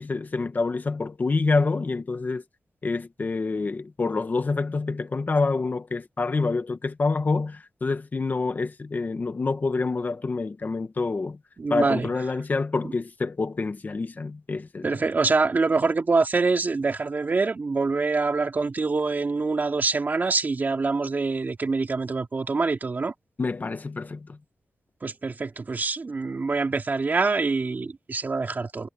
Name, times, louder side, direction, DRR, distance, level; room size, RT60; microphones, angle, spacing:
voice 1, 0.0-2.4 2.8-11.4 11.7-15.0 23.4-24.4, left 3 dB, 40° left, 1.2 m, -27 dB
voice 2, 11.6-12.1 14.8-23.1 25.0-28.9, right 4 dB, 40° right, 2.4 m, -25 dB
wide cardioid pair, 130°, 5 cm